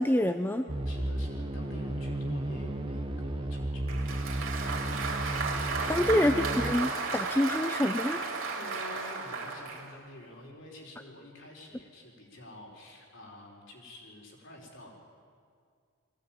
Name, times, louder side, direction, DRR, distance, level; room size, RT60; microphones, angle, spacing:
voice 1, 0.0-0.7 5.9-8.2, left 1 dB, 10° left, 8 dB, 0.5 m, -27 dB
sound 1, 0.7-6.8, right 1 dB, 25° right, 1.0 m, -33 dB
voice 2, 0.8-5.0 5.8-6.3 8.4-14.9, left 1 dB, 60° left, -1 dB, 4.5 m, -49 dB
Applause, 3.9-9.9, right 4 dB, 65° right, 3.2 m, -34 dB
21.0 x 16.0 x 9.1 m, 2.2 s
head